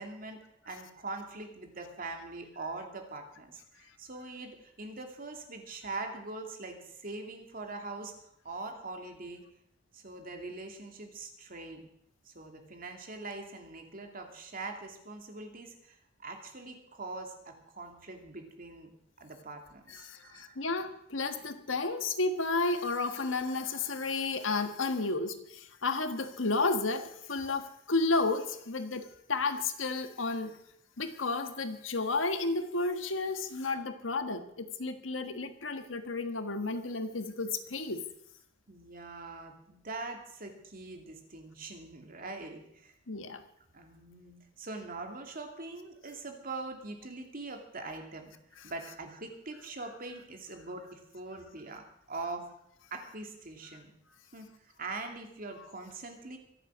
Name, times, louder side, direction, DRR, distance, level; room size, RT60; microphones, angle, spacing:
voice 1, 0.0-8.1 8.4-9.4 9.9-11.9 12.2-18.9 19.2-20.6 38.7-42.9 43.7-48.3 48.6-52.5 52.9-53.9 54.3-56.4, right 3 dB, 45° right, 3 dB, 2.6 m, -43 dB
voice 2, 19.9-30.6 31.0-38.0 43.1-43.4, left 3 dB, 85° left, 8 dB, 1.5 m, -32 dB
24.0 x 8.2 x 6.3 m, 0.73 s
head